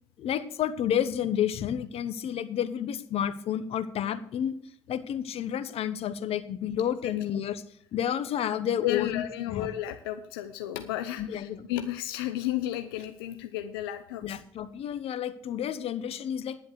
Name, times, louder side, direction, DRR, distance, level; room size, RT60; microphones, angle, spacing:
voice 1, 0.2-4.5 4.9-7.6 7.9-9.7 11.2-11.6 14.2-16.6, left 9 dB, 55° left, 13 dB, 1.1 m, -30 dB
voice 2, 8.8-14.4, left 13 dB, 85° left, 8 dB, 0.7 m, -33 dB
10.5 x 7.8 x 6.7 m, 0.66 s
hypercardioid pair, 55°, 12 cm